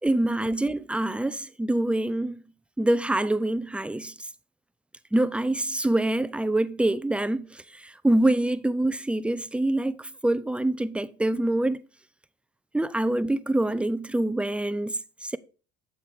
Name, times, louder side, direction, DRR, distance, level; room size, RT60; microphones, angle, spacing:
voice 1, 0.0-2.4 2.8-4.1 5.1-11.8 12.7-15.4, right 1 dB, 5° right, 0.4 m, -25 dB
8.8 x 6.7 x 3.5 m
hypercardioid pair, 65°, 32 cm